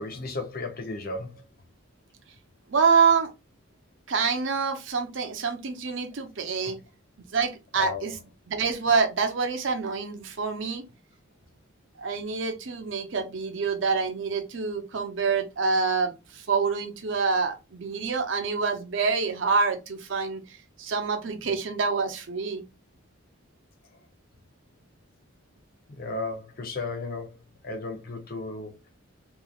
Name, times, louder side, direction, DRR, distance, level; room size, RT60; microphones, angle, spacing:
voice 1, 0.0-1.4 6.6-6.7 7.8-8.1 25.9-27.4 27.6-28.8, left 3 dB, 45° left, 0.6 m, -34 dB
voice 2, 2.7-3.3 4.1-6.8 7.3-8.2 8.5-10.8 12.0-22.6, right 5 dB, 60° right, 0.6 m, -26 dB
2.9 x 2.4 x 2.3 m
head